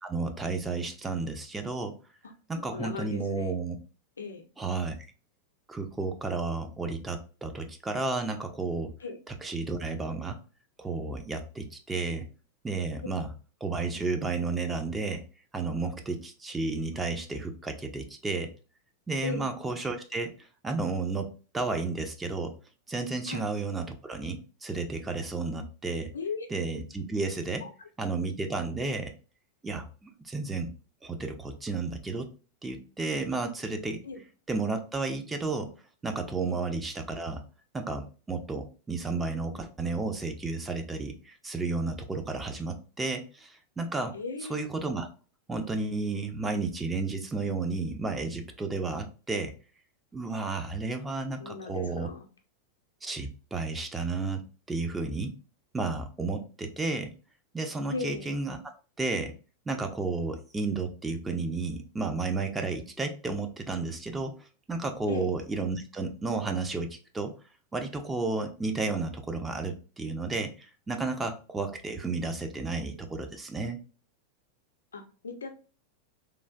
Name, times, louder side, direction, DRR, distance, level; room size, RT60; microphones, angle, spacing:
voice 1, 0.0-2.0 2.5-3.8 4.6-4.9 5.7-8.9 9.3-10.4 10.8-12.3 12.6-13.3 13.6-15.2 15.5-18.5 19.1-20.3 20.6-22.5 22.9-26.1 26.5-27.6 28.0-29.1 29.6-30.7 31.0-32.3 32.6-34.0 34.5-35.7 36.0-37.4 37.7-44.2 44.5-45.1 45.5-49.5 50.1-52.1 53.0-55.3 55.7-57.1 57.5-58.6 59.0-59.3 59.7-67.3 67.7-73.8, right 3 dB, 10° right, 5 dB, 0.5 m, -32 dB
voice 2, 2.7-3.5 4.2-4.4 9.0-9.2 19.2-19.6 23.3-23.5 26.1-26.5 27.6-27.7 34.0-34.2 36.4-36.6 44.1-44.6 51.4-52.2 57.9-58.3 65.1-65.3 74.9-75.5, left 4 dB, 70° left, 4 dB, 0.5 m, -37 dB
3.2 x 2.4 x 2.3 m, 0.35 s
figure-of-eight pair, 90°, 0 cm